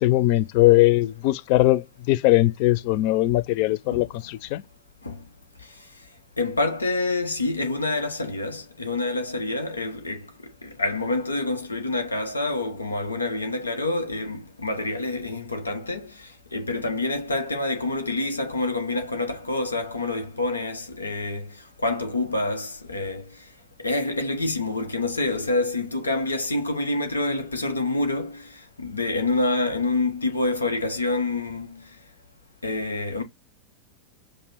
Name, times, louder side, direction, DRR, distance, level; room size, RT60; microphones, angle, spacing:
voice 1, 0.0-4.6, left 17 dB, 45° left, 0.4 m, -20 dB
voice 2, 6.4-10.3 10.6-21.6 21.8-23.3 23.8-31.9 32.6-33.2, left 2 dB, 80° left, 0.9 m, -27 dB
5.3 x 2.2 x 4.2 m
figure-of-eight pair, 90°, 0 cm